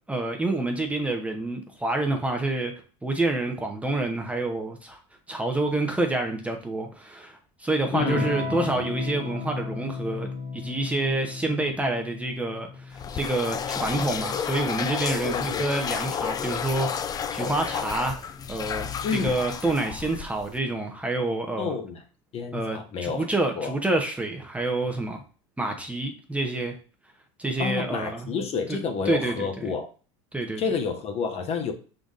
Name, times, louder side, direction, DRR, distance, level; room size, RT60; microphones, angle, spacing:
voice 1, 0.1-2.7 3.0-5.0 5.3-18.9 19.2-21.8 22.5-25.2 25.6-26.7 27.4-28.3 28.7-28.8 29.1-29.5 30.3-30.6, right 2 dB, 10° right, 2 dB, 0.7 m, -28 dB
Electric guitar / Strum, 7.9-16.2, left 4 dB, 80° left, 1.6 m, -36 dB
voice 2, 7.9-8.8 15.2-15.7 19.0-19.3 21.6-22.0 22.3-23.2 23.6-23.7 27.6-29.9 30.6-31.7, left 5 dB, 40° left, 5 dB, 0.9 m, -29 dB
sound 1, 12.9-20.6, left 7 dB, 25° left, 0.3 m, -31 dB
5.0 x 3.8 x 2.4 m, 0.38 s
hypercardioid pair, 100°, 16 cm